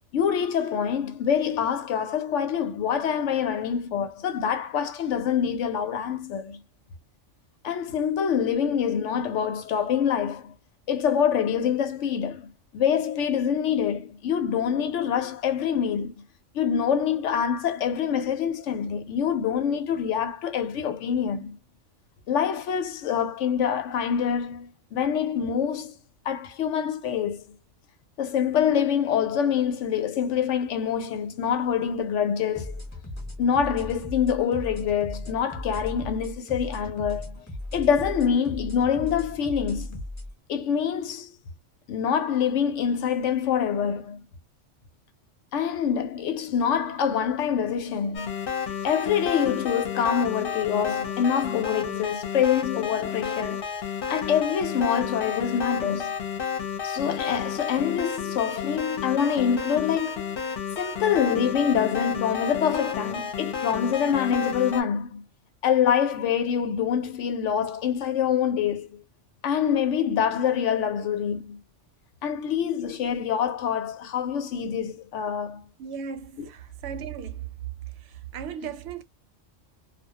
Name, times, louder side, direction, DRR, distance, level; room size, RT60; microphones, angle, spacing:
voice 1, 0.1-6.6 7.6-10.5 10.9-16.2 16.5-21.6 22.3-26.0 26.2-27.4 28.2-32.8 33.4-37.4 37.7-40.0 40.5-41.4 41.9-44.2 45.5-48.3 48.8-53.7 54.1-56.2 56.8-60.3 60.8-65.2 65.6-69.0 69.4-71.6 72.2-75.6, left 8 dB, 75° left, 0.9 m, -25 dB
sound 1, 32.5-40.3, left 1 dB, 15° left, 0.9 m, -37 dB
sound 2, 48.1-64.8, left 7 dB, 55° left, 0.8 m, -31 dB
voice 2, 75.8-77.5 77.9-79.0, right 7 dB, 65° right, 0.8 m, -36 dB
2.3 x 2.1 x 2.7 m
omnidirectional pair, 1.3 m